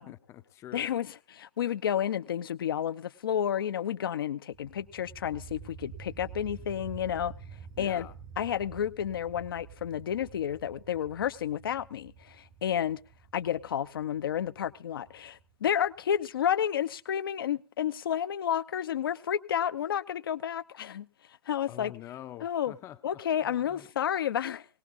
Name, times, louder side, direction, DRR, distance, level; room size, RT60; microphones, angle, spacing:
voice 1, 0.0-0.8 7.8-8.1 21.7-23.0 23.4-23.9, left 12 dB, 20° left, 0.6 m, -46 dB
voice 2, 0.7-7.3 7.8-8.1 8.4-13.0 13.3-21.1 21.5-22.0 22.4-22.7 23.0-24.7, left 9 dB, 55° left, 0.7 m, -31 dB
sound 1, 4.5-16.1, right 7 dB, 25° right, 0.8 m, -49 dB
20.0 x 18.5 x 2.6 m
figure-of-eight pair, 110°, 14 cm